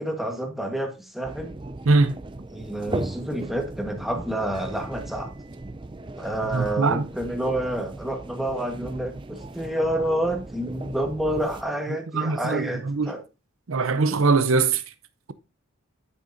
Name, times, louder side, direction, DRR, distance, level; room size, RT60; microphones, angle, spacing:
voice 1, 0.0-1.5 2.5-5.3 6.2-13.2, right 1 dB, ahead, 1.3 m, -28 dB
sound 1, 1.2-11.6, right 2 dB, 20° right, 0.4 m, -37 dB
voice 2, 6.5-7.0 12.1-13.1 13.7-14.8, right 3 dB, 70° right, 0.6 m, -21 dB
9.2 x 8.5 x 2.6 m
head